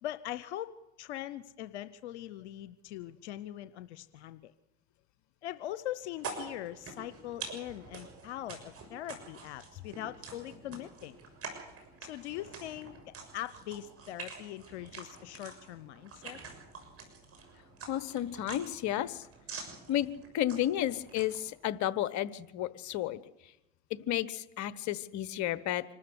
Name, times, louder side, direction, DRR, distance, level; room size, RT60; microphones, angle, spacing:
voice 1, 0.0-4.5 5.4-11.2 12.0-12.9 13.3-16.4, left 13 dB, 90° left, 13 dB, 0.7 m, -41 dB
sound 1, 6.1-21.5, right 4 dB, 45° right, 6.5 m, -47 dB
voice 2, 17.9-19.2 19.9-20.1 20.3-23.2 23.9-25.8, left 12 dB, 60° left, 16 dB, 1.2 m, -32 dB
25.5 x 13.0 x 8.1 m, 0.92 s
hypercardioid pair, 80°, 33 cm